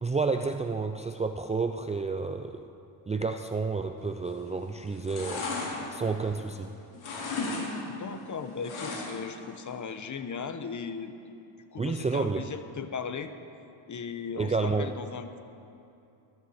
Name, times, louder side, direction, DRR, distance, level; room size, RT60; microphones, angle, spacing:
voice 1, 0.0-2.7 3.1-5.5 5.9-6.8 11.8-12.5 14.4-14.9, right 4 dB, 15° right, 5 dB, 0.4 m, -30 dB
sound 1, 4.2-4.6 4.9-6.6 6.9-7.7 7.9-9.3 9.7-9.8, left 3 dB, 75° left, 4.3 m, -35 dB
voice 2, 7.9-11.4 11.7-13.3 13.9-15.4, left 5 dB, 35° left, 9 dB, 1.0 m, -37 dB
22.0 x 13.5 x 4.3 m, 2.8 s
cardioid pair, 115°, 49 cm